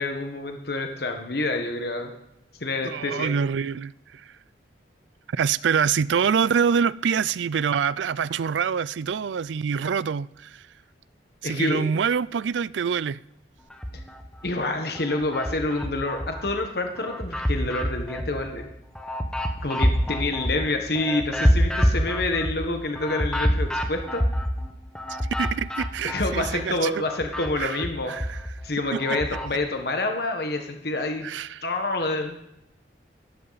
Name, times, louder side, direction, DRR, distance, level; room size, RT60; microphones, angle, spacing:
voice 1, 0.0-2.1 2.6-3.3 11.4-11.8 13.9-14.0 14.4-18.6 19.6-24.2 26.0-31.3 31.6-32.4, left 2 dB, 60° left, 1.3 m, -28 dB
voice 2, 2.8-4.2 5.3-10.6 11.4-13.2 25.4-26.9 27.6-27.8 28.1-28.4 28.9-29.0 31.2-31.6, right 7 dB, 85° right, 0.4 m, -25 dB
sound 1, 13.7-14.5 14.9-16.5 16.9-26.7 26.9-29.5, equal, 5° left, 1.2 m, -27 dB
16.5 x 13.0 x 4.1 m
head